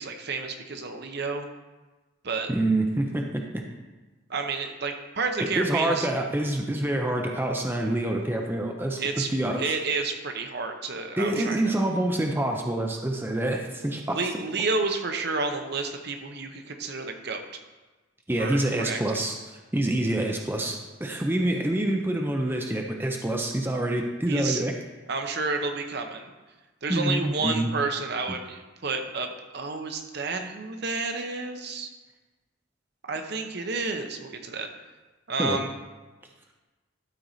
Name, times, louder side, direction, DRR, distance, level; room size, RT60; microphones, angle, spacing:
voice 1, 0.0-1.5 2.2-2.5 4.3-6.1 9.0-11.7 14.1-17.4 18.4-19.2 24.3-24.6 25.1-26.3 26.8-31.9 33.1-34.7 35.3-35.7, right 3 dB, 55° right, 5 dB, 0.8 m, -30 dB
voice 2, 2.5-3.6 5.6-9.6 11.2-14.2 18.3-19.3 19.7-24.7 26.9-27.7 35.4-35.6, right 1 dB, 10° right, 2 dB, 0.6 m, -26 dB
12.5 x 4.7 x 4.0 m, 1.2 s
head